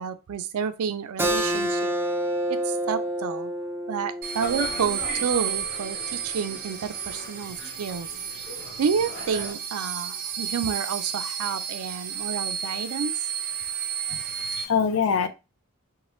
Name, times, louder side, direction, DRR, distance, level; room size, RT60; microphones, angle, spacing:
voice 1, 0.0-1.9 2.5-3.5 3.9-8.1 8.8-13.1, right 7 dB, 85° right, 0.4 m, -30 dB
Keyboard (musical), 1.2-6.4, right 1 dB, 10° right, 0.3 m, -29 dB
sound 1, 4.2-14.6, right 7 dB, 40° right, 0.7 m, -32 dB
sound 2, 4.4-9.5, left 2 dB, 55° left, 1.0 m, -39 dB
voice 2, 14.1-15.3, left 6 dB, 75° left, 0.4 m, -25 dB
3.0 x 2.2 x 3.0 m
head